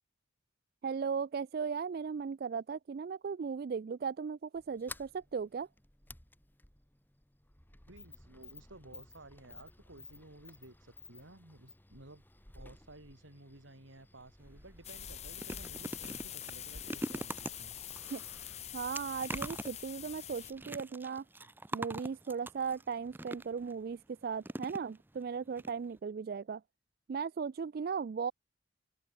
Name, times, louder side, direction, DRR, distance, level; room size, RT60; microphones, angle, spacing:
voice 1, 0.8-5.7 18.1-18.2 18.7-21.2 21.7-26.6 27.1-28.3, right 6 dB, 50° right, 0.3 m, -37 dB
Sliding door, 4.5-20.9, left 2 dB, 10° left, 2.2 m, -55 dB
voice 2, 7.9-12.2 12.5-17.7 21.4-21.5, right 2 dB, 80° right, 4.1 m, -55 dB
sound 1, 14.4-14.6 14.9-23.7 24.4-25.2 25.6-25.7 26.0-26.1, right 1 dB, 10° right, 0.6 m, -43 dB
sound 2, 14.8-20.5, left 11 dB, 35° left, 1.1 m, -45 dB
open air
head